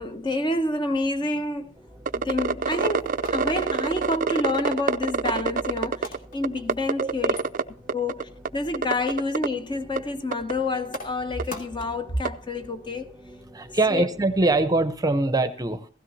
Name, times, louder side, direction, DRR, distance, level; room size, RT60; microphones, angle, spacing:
voice 1, 0.0-1.7 2.1-7.3 7.9-13.2 13.9-14.1, left 2 dB, 20° left, 0.9 m, -28 dB
sound 1, 1.7-14.9, equal, ahead, 1.3 m, -47 dB
sound 2, 2.1-6.2 6.4-7.6 7.9-8.5 8.7-9.5 10.0-10.1 10.3-10.5 10.9-11.0 11.4-11.5 12.2-12.3, right 5 dB, 40° right, 0.5 m, -25 dB
sound 3, 2.9-14.4, left 2 dB, 40° left, 2.5 m, -47 dB
voice 2, 13.5-15.9, right 2 dB, 20° right, 0.9 m, -23 dB
16.5 x 16.0 x 2.8 m
head